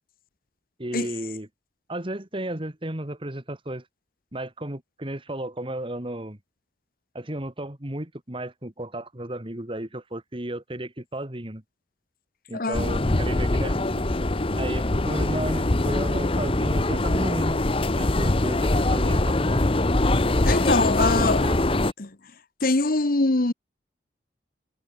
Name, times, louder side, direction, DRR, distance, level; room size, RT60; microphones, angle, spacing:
voice 1, 0.8-1.5 1.9-3.9 4.3-6.4 7.1-11.6 12.5-14.0 14.5-17.6 17.9-19.8 21.0-21.8, right 1 dB, 30° right, 2.0 m, -33 dB
voice 2, 12.5-12.9 20.4-21.4 22.0-22.1 22.6-23.5, left 2 dB, 55° left, 1.2 m, -23 dB
sound 1, 12.7-21.9, left 2 dB, 30° left, 1.0 m, -23 dB
head